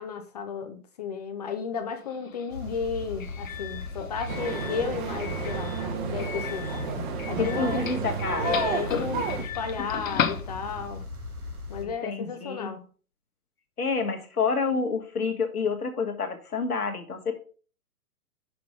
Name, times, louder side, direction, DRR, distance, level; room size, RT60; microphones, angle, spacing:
voice 1, 0.0-5.7 6.1-6.7 7.3-7.8 8.4-11.1 11.7-12.8, left 6 dB, 30° left, 0.5 m, -33 dB
Doorbell, 2.0-11.0, left 8 dB, 60° left, 1.0 m, -36 dB
sound 1, 2.5-11.8, left 2 dB, 80° right, 2.0 m, -39 dB
sound 2, 4.3-9.4, right 6 dB, 35° right, 1.1 m, -32 dB
voice 2, 7.4-8.5 11.8-12.7 13.8-17.4, left 4 dB, 80° left, 1.6 m, -29 dB
6.0 x 5.2 x 4.9 m
figure-of-eight pair, 125°, 44 cm